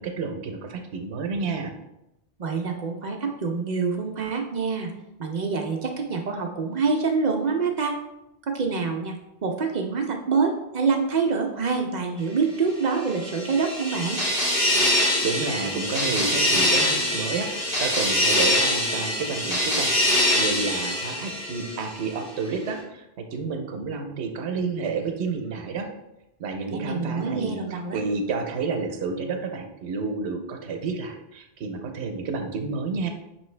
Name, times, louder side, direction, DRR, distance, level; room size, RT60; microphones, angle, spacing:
voice 1, 0.0-1.7 15.2-19.9 20.4-25.9 26.4-33.1, right 4 dB, 90° right, 5 dB, 0.9 m, -30 dB
voice 2, 2.4-4.9 5.2-8.0 8.5-9.1 9.4-14.2 26.7-28.0, right 5 dB, 55° right, 3 dB, 0.6 m, -26 dB
sound 1, 12.9-22.1, left 1 dB, 35° left, 1.4 m, -24 dB
5.3 x 3.1 x 3.2 m, 0.90 s
omnidirectional pair, 1.1 m